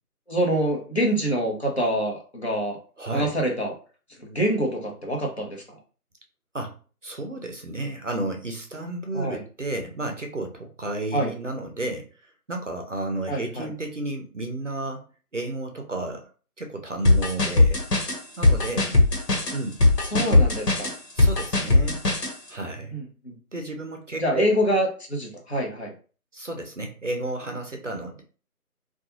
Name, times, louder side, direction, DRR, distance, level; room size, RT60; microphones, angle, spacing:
voice 1, 0.3-2.8 3.1-3.7 4.2-5.6 9.1-9.4 11.1-11.3 13.3-13.7 20.1-20.9 22.9-23.3 24.2-25.9, equal, 45° left, -1 dB, 0.8 m, -25 dB
voice 2, 3.0-3.3 6.5-6.7 7.0-12.1 12.5-15.0 15.3-16.3 16.6-17.8 18.4-18.9 19.5-19.8 20.1-20.5 21.1-22.0 22.5-22.9 23.5-24.5 26.3-28.2, right 2 dB, 55° right, 4 dB, 0.5 m, -32 dB
sound 1, 17.0-22.3, left 2 dB, 85° left, 1.2 m, -19 dB
2.4 x 2.3 x 2.9 m, 0.38 s
figure-of-eight pair, 170°, 47 cm